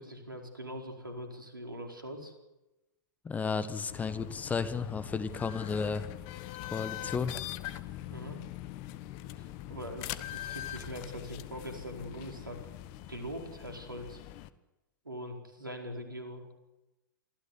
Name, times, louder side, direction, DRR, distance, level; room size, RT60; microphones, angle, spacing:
voice 1, 0.0-2.3 8.1-8.4 9.4-12.6 13.1-14.2 15.0-16.5, equal, 90° right, 4 dB, 4.7 m, -42 dB
voice 2, 3.2-6.0 6.7-7.3, left 5 dB, 15° left, 14 dB, 1.4 m, -33 dB
sound 1, 3.9-14.5, left 14 dB, 40° left, 1.2 m, -42 dB
24.0 x 15.5 x 9.9 m, 1.0 s
figure-of-eight pair, 110°, 11 cm